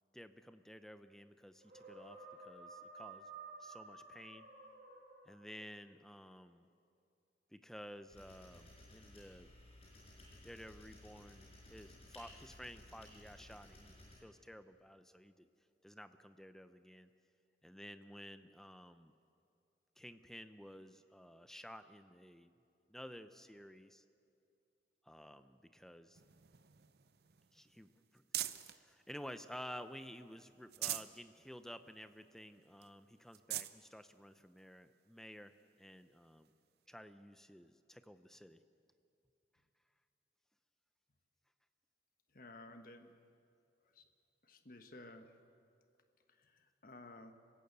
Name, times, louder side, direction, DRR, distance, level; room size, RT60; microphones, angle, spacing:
voice 1, 0.1-3.3 3.6-4.5 5.2-6.7 7.5-9.5 10.4-15.5 15.8-17.1 17.6-19.1 20.0-22.5 22.9-24.0 25.0-26.2 27.5-28.2 28.6-36.5 36.9-38.6, equal, 5° left, 10 dB, 0.6 m, -53 dB
sound 1, 1.6-5.7, right 3 dB, 45° right, 5.7 m, -53 dB
sound 2, 8.1-14.2, left 1 dB, 35° left, 5.5 m, -58 dB
sound 3, 26.1-28.8 29.3-30.1 30.5-31.2 31.6-31.7 32.1-32.2 32.8-32.9 33.3-33.8 34.6-34.7 36.4-36.5, right 13 dB, 65° right, 0.7 m, -44 dB
voice 2, 42.3-43.2 43.9-44.0 44.4-45.4 46.4-47.3, left 2 dB, 50° left, 7 dB, 1.3 m, -55 dB
25.5 x 16.0 x 8.1 m, 2.4 s
head